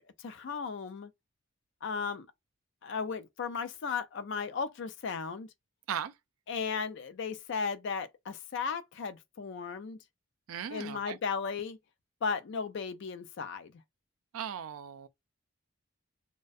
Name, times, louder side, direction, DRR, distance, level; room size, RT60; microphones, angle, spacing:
voice 1, 0.2-1.1 1.8-2.3 2.8-5.5 6.5-10.0 10.7-11.8 12.2-13.7, left 5 dB, 60° left, 0.4 m, -35 dB
voice 2, 10.5-11.2 14.3-15.1, right 8 dB, 85° right, 0.4 m, -37 dB
2.4 x 2.1 x 2.5 m
head